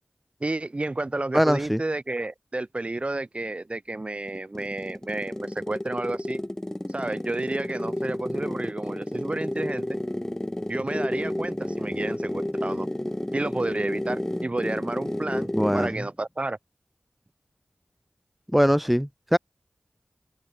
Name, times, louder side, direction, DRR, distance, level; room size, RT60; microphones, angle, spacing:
voice 1, 0.4-6.4 6.9-10.0 10.7-12.9 13.3-16.6, right 2 dB, 40° right, 5.4 m, -31 dB
voice 2, 1.3-1.8 15.5-15.9 18.5-19.4, equal, ahead, 2.2 m, -21 dB
sound 1, 4.3-16.0, left 1 dB, 15° left, 7.7 m, -31 dB
open air
wide cardioid pair, 50°, 3 cm